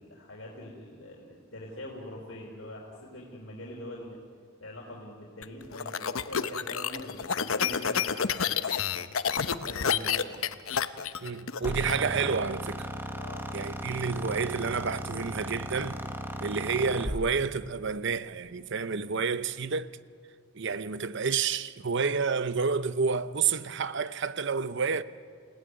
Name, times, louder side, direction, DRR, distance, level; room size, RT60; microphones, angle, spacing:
voice 1, 0.0-4.2 4.6-8.7 9.4-10.4 11.2-11.3 13.1-13.5, left 1 dB, 70° left, 3.8 m, -43 dB
sound 1, 5.4-11.9, left 7 dB, 85° left, 0.9 m, -29 dB
voice 2, 11.2-12.9 13.5-16.0 16.4-19.9 20.5-25.0, right 5 dB, 60° right, 0.8 m, -29 dB
sound 2, 11.6-17.2, right 1 dB, 10° right, 1.4 m, -36 dB
29.0 x 17.0 x 9.7 m
head